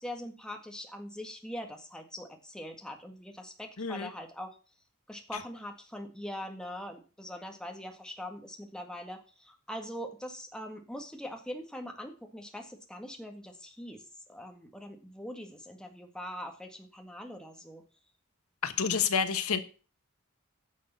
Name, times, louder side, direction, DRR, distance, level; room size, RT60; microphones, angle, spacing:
voice 1, 0.0-4.5 5.1-17.8, equal, 5° left, 1.7 m, -42 dB
voice 2, 3.8-4.1 18.6-19.6, left 6 dB, 90° left, 1.2 m, -28 dB
10.5 x 6.6 x 6.8 m
head